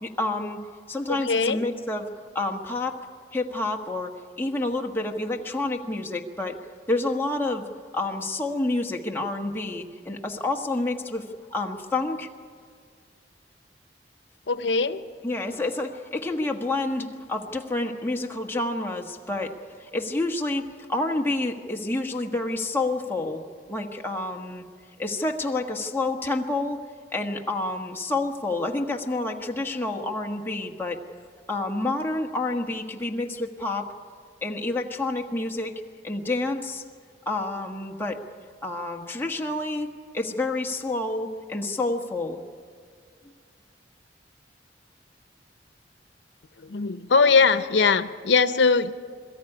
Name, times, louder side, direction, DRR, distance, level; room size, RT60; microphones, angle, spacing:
voice 1, 0.0-0.6 0.9-3.0 3.3-6.5 6.9-7.6 7.9-11.2 11.5-12.3 15.2-19.5 19.8-23.4 23.7-24.6 25.0-26.8 27.1-31.0 31.5-33.9 34.4-35.7 36.0-36.8 37.3-38.2 38.6-39.9 40.1-42.4, left 2 dB, 10° left, 1 dB, 1.4 m, -28 dB
voice 2, 1.1-1.6 14.5-15.0 46.6-48.9, left 4 dB, 90° left, 12 dB, 0.7 m, -21 dB
22.5 x 14.0 x 9.8 m, 2.1 s
head